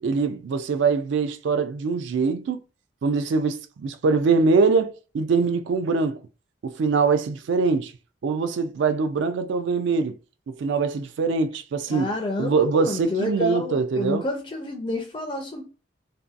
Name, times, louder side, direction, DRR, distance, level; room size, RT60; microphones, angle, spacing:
voice 1, 0.0-2.6 3.0-6.2 6.6-7.9 8.2-10.2 10.5-12.1 12.4-14.3, right 4 dB, 65° right, 0.3 m, -23 dB
voice 2, 11.9-15.6, left 2 dB, 25° left, 0.4 m, -29 dB
2.6 x 2.2 x 2.4 m
head